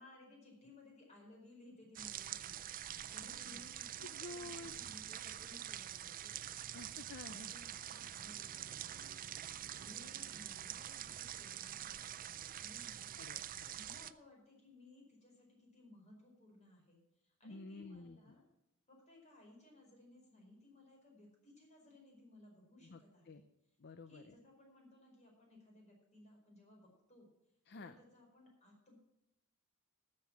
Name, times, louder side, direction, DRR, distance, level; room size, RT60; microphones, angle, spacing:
voice 1, 0.0-2.6 3.1-6.4 7.3-13.2 13.7-18.4 18.9-23.4 24.1-27.3 27.7-28.9, left 1 dB, 35° left, 0 dB, 4.9 m, -61 dB
sound 1, 1.9-14.1, right 11 dB, 40° right, 0.4 m, -46 dB
voice 2, 3.2-3.6 4.0-4.8 6.7-7.5 13.2-13.8 17.4-18.4 22.8-23.0 23.3-23.4 23.8-24.3 27.7-27.9, left 3 dB, 50° left, 10 dB, 0.6 m, -51 dB
13.0 x 7.7 x 7.4 m, 0.86 s
head